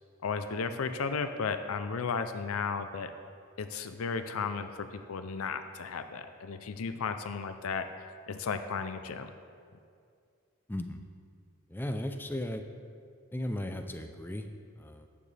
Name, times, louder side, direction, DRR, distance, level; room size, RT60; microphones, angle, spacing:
voice 1, 0.2-3.1 3.6-7.9 8.3-9.3, left 5 dB, 85° left, 9 dB, 0.5 m, -34 dB
voice 2, 10.7-11.0 11.7-12.6 13.3-14.5 14.8-15.1, left 1 dB, 10° left, 6 dB, 0.5 m, -36 dB
13.5 x 8.7 x 3.4 m, 2.3 s
head